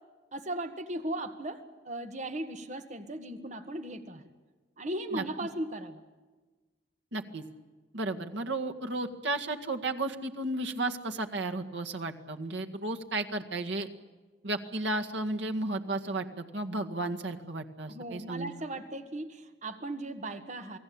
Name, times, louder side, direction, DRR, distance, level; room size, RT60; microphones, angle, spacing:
voice 1, 0.3-4.2 4.8-6.0 17.9-20.8, right 1 dB, 40° right, 8 dB, 1.7 m, -37 dB
voice 2, 7.1-7.4 7.9-13.9 14.4-18.5, right 2 dB, 75° right, 4 dB, 2.0 m, -33 dB
28.5 x 19.5 x 8.8 m, 1.3 s
head